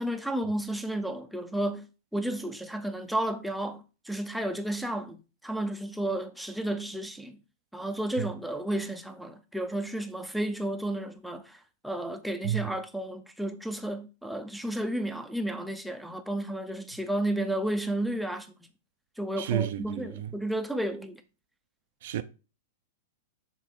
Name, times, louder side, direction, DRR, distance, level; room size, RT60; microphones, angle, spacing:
voice 1, 0.0-1.9 2.1-7.4 7.7-11.6 11.8-18.5 19.2-21.2, right 1 dB, ahead, 0.7 m, -32 dB
voice 2, 19.4-20.3 22.0-22.2, right 12 dB, 60° right, 0.5 m, -31 dB
6.7 x 3.5 x 4.6 m
hypercardioid pair, 105°, 0 cm